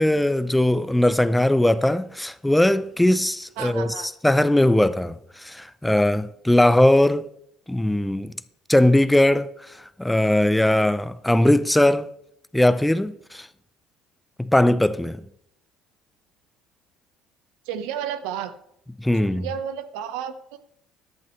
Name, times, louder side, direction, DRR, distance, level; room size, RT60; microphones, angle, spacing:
voice 1, 0.0-3.9 4.2-5.1 5.4-7.2 7.7-8.3 8.7-9.5 10.0-12.1 12.5-13.5 14.4-15.2 19.0-19.5, left 1 dB, 5° left, 0.6 m, -19 dB
voice 2, 3.6-4.1 17.6-18.5 19.1-20.6, right 9 dB, 80° right, 1.0 m, -32 dB
14.5 x 10.5 x 3.2 m
supercardioid pair, 75°, 0 cm